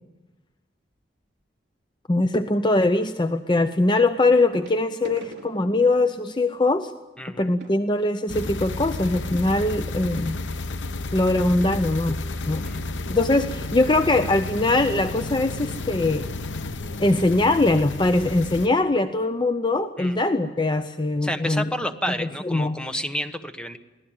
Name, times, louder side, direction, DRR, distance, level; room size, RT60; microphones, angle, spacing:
sound 1, 0.9-1.2 2.9-3.0 4.5-8.9 9.7-9.8 10.0-10.2 10.7-10.8, right 1 dB, 65° right, 4.7 m, -45 dB
voice 1, 2.1-6.9 7.4-10.4 11.1-12.2 12.5-12.6 13.1-16.3 17.0-21.7 22.2-22.8, left 2 dB, 25° left, 9 dB, 0.7 m, -22 dB
voice 2, 7.2-7.5 12.6-12.8 20.0-20.2 21.2-23.8, equal, 5° left, 7 dB, 1.3 m, -30 dB
sound 2, 8.3-18.7, left 2 dB, 85° left, 1.0 m, -32 dB
24.0 x 17.0 x 9.0 m, 1.2 s
head